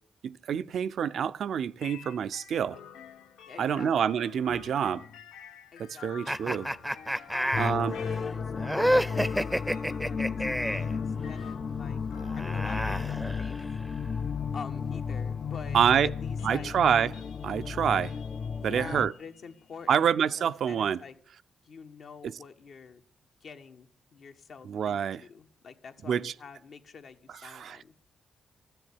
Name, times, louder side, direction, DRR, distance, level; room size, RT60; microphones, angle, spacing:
voice 1, 0.2-2.8 3.6-5.1 5.8-6.7 7.6-8.0 15.7-16.1 16.4-17.1 17.4-18.2 18.6-19.1 19.9-21.0 24.6-25.2 26.1-26.3 27.4-27.8, right 8 dB, 70° right, 0.5 m, -27 dB
sound 1, 1.8-20.5, left 8 dB, 90° left, 0.8 m, -51 dB
voice 2, 3.5-3.9 5.7-6.4 7.3-12.0 12.3-13.8 14.5-16.7 18.4-21.2 21.6-23.0 23.4-27.9, left 5 dB, 65° left, 1.4 m, -47 dB
sound 2, 6.3-10.9 12.1-13.9, equal, ahead, 0.6 m, -30 dB
sound 3, 7.5-19.1, left 6 dB, 50° left, 0.5 m, -33 dB
13.0 x 7.7 x 9.9 m
supercardioid pair, 60°, 0 cm